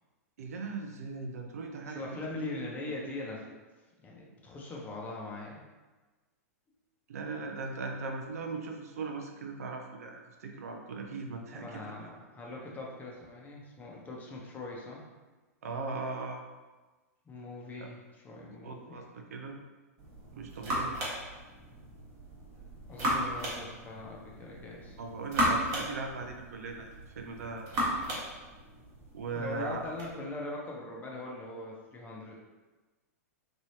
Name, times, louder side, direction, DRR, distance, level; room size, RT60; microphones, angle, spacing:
voice 1, 0.4-2.3 7.1-12.1 15.6-16.4 17.8-17.9 18.6-19.6 20.3-21.0 25.0-28.2 29.1-29.8, right 4 dB, 75° right, 3 dB, 0.5 m, -39 dB
voice 2, 1.9-3.4 4.0-5.7 11.5-15.0 17.2-19.0 22.9-25.0 29.3-32.4, left 2 dB, 20° left, -2 dB, 0.8 m, -41 dB
sound 1, 20.0-30.1, right 1 dB, 35° right, 1.2 m, -35 dB
3.3 x 2.9 x 2.8 m, 1.2 s
hypercardioid pair, 105°, 8 cm